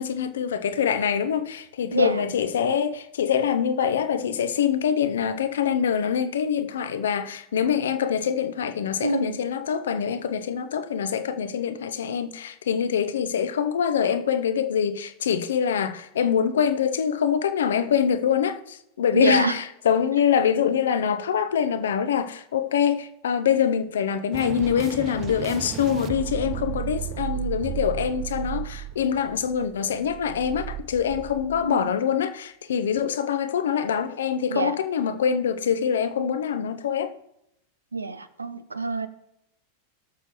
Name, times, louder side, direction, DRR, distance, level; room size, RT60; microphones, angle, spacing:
voice 1, 0.0-37.1, left 8 dB, 65° left, 0.7 m, -24 dB
voice 2, 9.0-9.4 19.1-19.6 31.4-31.9 34.5-34.8 37.9-39.1, right 3 dB, 80° right, 0.7 m, -26 dB
sound 1, 24.3-31.8, right 14 dB, 35° right, 0.4 m, -34 dB
18.5 x 6.7 x 3.0 m
figure-of-eight pair, 90°, 0 cm